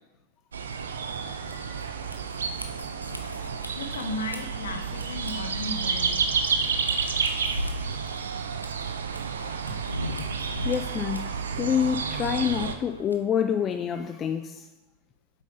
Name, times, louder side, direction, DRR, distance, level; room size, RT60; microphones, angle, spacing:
sound 1, 0.5-12.8, right 5 dB, 70° right, 0.9 m, -30 dB
sound 2, 1.1-14.0, left 1 dB, 85° left, 1.0 m, -41 dB
voice 1, 3.5-6.2, left 2 dB, 65° left, 1.4 m, -35 dB
voice 2, 10.6-14.7, left 8 dB, 25° left, 0.5 m, -27 dB
8.3 x 7.8 x 5.2 m
figure-of-eight pair, 90°, 0 cm